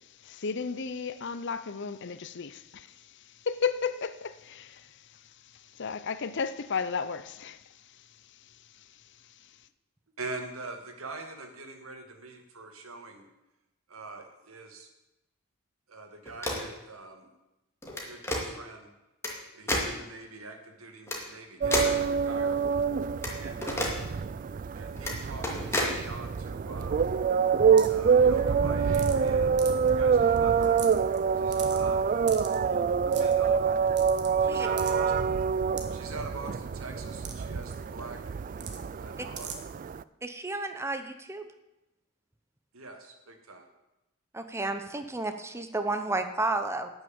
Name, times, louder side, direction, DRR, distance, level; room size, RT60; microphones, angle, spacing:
voice 1, 0.2-2.9 3.4-4.9 5.7-7.6, left 5 dB, 60° left, 0.6 m, -33 dB
voice 2, 10.2-13.2 13.9-14.9 15.9-17.2 18.1-18.9 19.5-22.6 23.4-24.0 24.8-27.0 27.9-29.6 29.9-30.8 31.4-32.1 33.2-33.6 34.4-35.1 35.9-38.2 39.0-39.5 42.7-43.0 43.3-43.6, right 3 dB, 85° right, 2.0 m, -43 dB
sound 1, 16.3-16.7 17.8-18.4 19.2-19.3 19.7-19.9 21.1-21.2 21.7-22.0 23.2-23.3 23.6-23.9 25.0-25.1 25.4-25.9, left 1 dB, 15° left, 2.2 m, -29 dB
sound 2, 21.6-40.0, right 6 dB, 40° right, 0.3 m, -26 dB
sound 3, 27.8-28.0 28.9-29.3 29.6-29.9 30.4-30.5 30.6-31.2 31.5-31.8 32.3-32.6 33.1-33.3 34.0-34.3 34.8-34.9 35.8-35.9 37.2-37.3 37.6-37.7 38.6-38.8 39.4-39.6, right 8 dB, 55° right, 1.6 m, -39 dB
voice 3, 40.2-41.5 44.3-46.9, right 2 dB, 15° right, 0.8 m, -32 dB
12.0 x 6.5 x 8.8 m
head